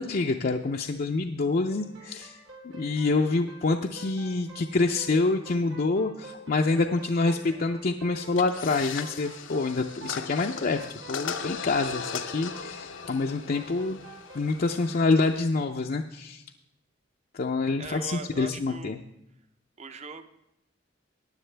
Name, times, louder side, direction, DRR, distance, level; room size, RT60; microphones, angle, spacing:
voice 1, 0.0-14.0 14.3-16.4 17.3-19.0, left 3 dB, 50° left, 3 dB, 0.5 m, -27 dB
sound 1, 1.7-14.5, right 4 dB, 75° right, 4.1 m, -48 dB
sound 2, 8.3-15.4, left 6 dB, 80° left, 0.7 m, -38 dB
voice 2, 17.8-19.0 19.8-20.3, right 4 dB, 35° right, 9 dB, 0.8 m, -40 dB
15.0 x 10.0 x 3.3 m, 0.87 s
head